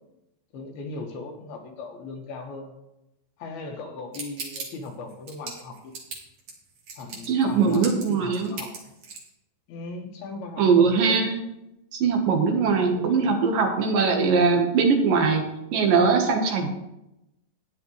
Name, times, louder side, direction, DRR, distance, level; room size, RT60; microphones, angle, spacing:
voice 1, 0.5-2.7 3.4-5.9 7.0-9.0 9.7-11.3 12.5-13.3, left 3 dB, 80° left, 2 dB, 3.4 m, -38 dB
sound 1, 4.1-9.3, right 4 dB, 50° right, 3.2 m, -38 dB
voice 2, 7.3-8.5 10.6-11.4 11.9-15.4 15.7-16.7, right 5 dB, 70° right, 2 dB, 2.9 m, -21 dB
13.0 x 10.0 x 3.3 m, 0.89 s
omnidirectional pair, 4.4 m